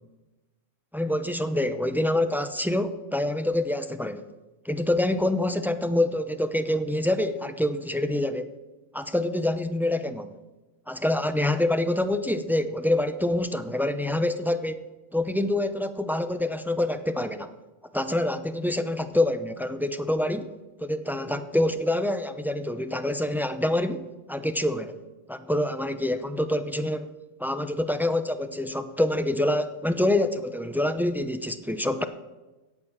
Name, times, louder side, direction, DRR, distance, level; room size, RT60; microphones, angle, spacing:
voice 1, 0.9-4.3 4.6-8.5 8.9-10.3 10.9-14.8 15.1-17.5 17.9-20.5 20.8-25.0 25.3-27.1 27.4-32.0, left 1 dB, 5° right, 9 dB, 0.4 m, -26 dB
17.0 x 7.2 x 7.2 m, 1.1 s
omnidirectional pair, 1.3 m